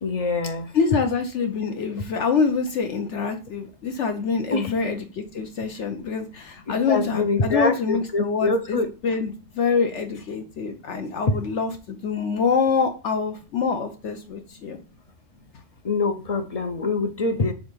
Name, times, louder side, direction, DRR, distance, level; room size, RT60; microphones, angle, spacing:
voice 1, 0.0-0.7 4.5-4.7 6.9-8.9 11.3-11.4 15.8-17.5, left 3 dB, 45° left, 0.5 m, -24 dB
voice 2, 0.7-14.8, left 5 dB, 65° left, 1.0 m, -25 dB
4.9 x 3.8 x 5.4 m
omnidirectional pair, 1.3 m